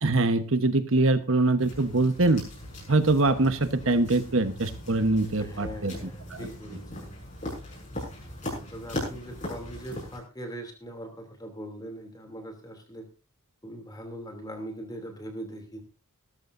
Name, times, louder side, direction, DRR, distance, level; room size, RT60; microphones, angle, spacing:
voice 1, 0.0-2.4 2.9-5.9 6.3-6.5, right 2 dB, 60° right, 11 dB, 1.2 m, -23 dB
sound 1, 1.6-10.2, left 1 dB, 35° left, 6.5 m, -39 dB
voice 2, 5.4-7.1 8.5-13.1 13.6-15.8, right 1 dB, 15° left, 5 dB, 2.9 m, -41 dB
18.0 x 13.5 x 2.7 m, 0.31 s
head